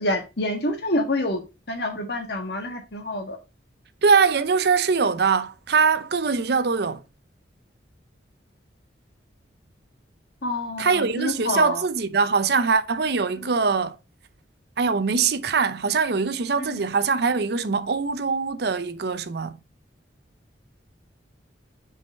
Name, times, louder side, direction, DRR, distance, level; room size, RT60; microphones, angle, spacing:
voice 1, 0.0-3.4 10.4-11.8 16.6-16.8, left 1 dB, 60° left, 1.6 m, -27 dB
voice 2, 4.0-7.0 10.8-14.0 14.8-19.6, right 5 dB, 60° right, 0.6 m, -22 dB
5.3 x 4.9 x 4.4 m
head